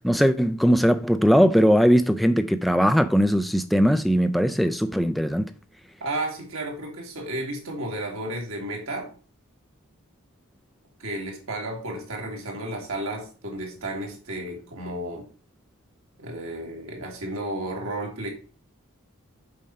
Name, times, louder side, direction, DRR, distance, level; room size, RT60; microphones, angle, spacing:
voice 1, 0.0-5.5, equal, ahead, 0.3 m, -20 dB
voice 2, 6.0-9.1 11.0-15.2 16.2-18.3, right 1 dB, 75° right, 2.2 m, -32 dB
7.4 x 4.3 x 5.4 m
head